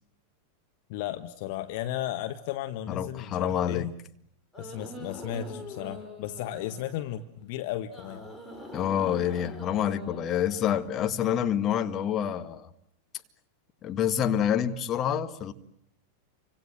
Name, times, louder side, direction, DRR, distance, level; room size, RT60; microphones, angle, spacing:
voice 1, 0.9-3.9 4.6-8.3, left 12 dB, 50° left, 9 dB, 1.4 m, -35 dB
voice 2, 2.9-3.9 8.7-12.7 13.8-15.5, left 9 dB, 30° left, 8 dB, 1.9 m, -27 dB
sound 1, 4.5-7.2 7.9-11.4, left 1 dB, 5° left, 5.8 m, -44 dB
29.0 x 25.5 x 7.7 m, 0.69 s
figure-of-eight pair, 90°, 0 cm